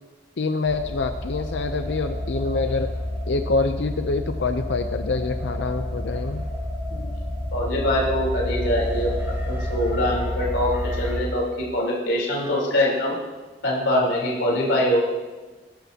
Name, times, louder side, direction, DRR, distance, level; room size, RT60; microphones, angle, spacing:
voice 1, 0.4-2.9 3.3-6.4, left 3 dB, 65° left, 7 dB, 0.6 m, -26 dB
sound 1, 0.6-11.2, left 1 dB, 15° right, 4.4 m, -29 dB
voice 2, 7.5-10.7 11.0-11.4 11.7-13.1 13.6-15.0, left 1 dB, 80° left, -4 dB, 3.7 m, -23 dB
21.0 x 11.5 x 2.8 m, 1.3 s
head